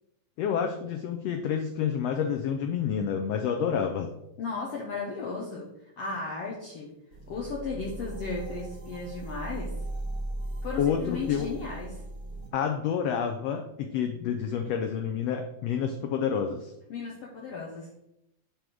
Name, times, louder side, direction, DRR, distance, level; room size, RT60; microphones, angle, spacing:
voice 1, 0.4-4.1 10.8-11.5 12.5-16.7, left 7 dB, 85° left, 5 dB, 1.4 m, -29 dB
voice 2, 4.4-6.9 7.3-9.8 10.6-12.0 16.9-17.9, left 4 dB, 65° left, -2 dB, 1.6 m, -35 dB
sound 1, 7.1-12.5, right 2 dB, 35° right, 1.7 m, -38 dB
7.5 x 3.5 x 6.1 m, 0.82 s
omnidirectional pair, 3.6 m